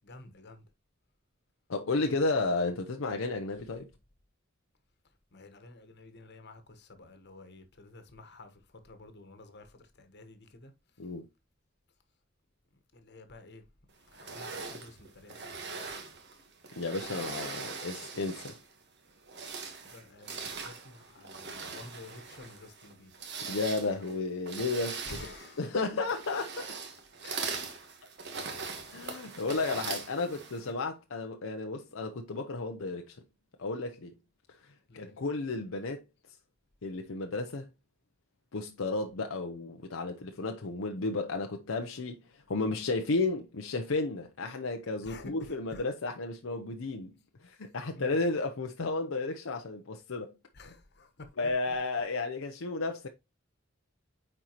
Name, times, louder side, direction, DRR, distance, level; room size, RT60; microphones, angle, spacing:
voice 1, 0.0-0.7 5.3-10.7 12.9-13.7 14.0-16.0 19.8-23.1 25.0-25.7 27.2-27.7 34.9-35.1 45.0-45.3 45.7-45.8 47.9-48.1 50.5-51.3 51.7-51.8, left 2 dB, 55° left, 1.3 m, -51 dB
voice 2, 1.7-3.9 11.0-11.3 16.8-18.6 23.5-25.2 25.6-26.8 28.9-33.2 33.6-34.1 34.9-36.0 36.8-37.7 38.5-47.1 47.4-50.3 51.4-53.1, left 3 dB, 80° left, 0.7 m, -33 dB
Curtains Heavy, 14.1-18.7 19.2-30.7, right 5 dB, 60° right, 1.4 m, -41 dB
9.0 x 4.4 x 3.0 m
head